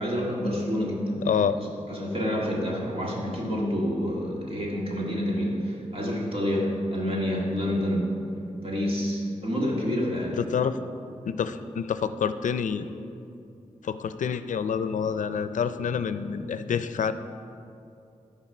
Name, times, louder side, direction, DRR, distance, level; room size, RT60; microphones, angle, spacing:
voice 1, 0.0-1.2 1.6-8.1 8.6-10.4, equal, 50° right, -3 dB, 2.1 m, -28 dB
voice 2, 1.2-1.6 10.4-10.8 11.3-12.9 13.8-17.1, left 7 dB, 85° left, 12 dB, 0.4 m, -27 dB
13.0 x 4.7 x 6.0 m, 2.6 s
wide cardioid pair, 120°, 13 cm